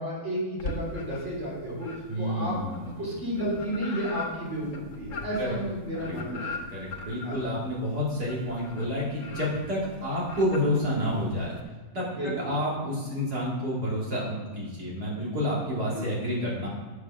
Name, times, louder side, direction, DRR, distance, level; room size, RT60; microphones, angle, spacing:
voice 1, 0.0-2.6 3.0-6.6 7.2-7.5 12.2-12.5 15.9-16.1, equal, 45° right, -4 dB, 4.0 m, -32 dB
sound 1, 0.6-1.4 1.8-11.6, left 2 dB, 55° left, 1.5 m, -40 dB
voice 2, 2.1-3.1 5.4-5.6 6.0-6.2 6.5-11.5 11.9-16.7, equal, 80° right, -6 dB, 3.9 m, -29 dB
8.4 x 7.6 x 6.3 m, 1.3 s
omnidirectional pair, 1.7 m